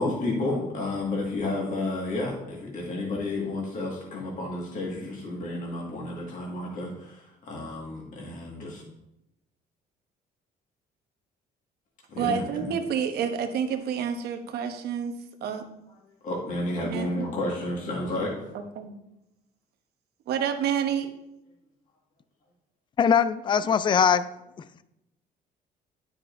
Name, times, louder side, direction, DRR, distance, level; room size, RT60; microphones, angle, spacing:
voice 1, 0.0-8.8 12.1-12.7 16.0-18.4, left 2 dB, 50° left, -2 dB, 1.9 m, -31 dB
voice 2, 12.2-15.1 15.4-15.6 16.8-17.3 18.8-18.9 20.3-21.1, right 8 dB, 70° right, 6 dB, 1.0 m, -28 dB
voice 3, 23.0-24.3, left 7 dB, 30° left, 14 dB, 0.4 m, -21 dB
9.8 x 6.1 x 2.6 m, 0.88 s
cardioid pair, 110°, 17 cm